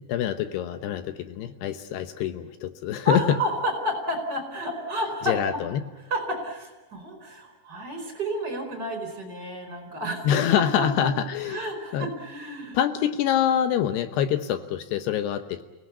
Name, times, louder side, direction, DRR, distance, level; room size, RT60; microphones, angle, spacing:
voice 1, 0.0-3.4 5.2-5.8 10.2-11.6 11.9-12.1 12.7-15.6, left 10 dB, 75° left, 9 dB, 3.0 m, -25 dB
voice 2, 3.0-5.6 6.1-11.1 11.5-12.8, equal, 25° right, 5 dB, 4.8 m, -31 dB
29.5 x 18.0 x 8.4 m, 1.1 s
omnidirectional pair, 5.0 m